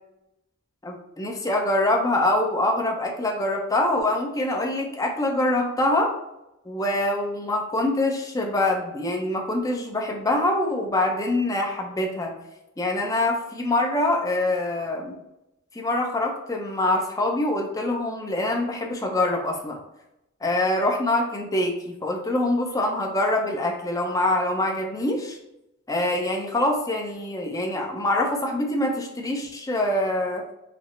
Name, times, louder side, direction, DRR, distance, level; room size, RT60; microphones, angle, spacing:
voice 1, 0.8-6.1 6.7-12.3 12.8-15.2 15.7-19.8 20.4-25.4 25.9-30.4, left 1 dB, 15° left, 0 dB, 0.6 m, -24 dB
5.9 x 2.0 x 3.1 m, 0.88 s
head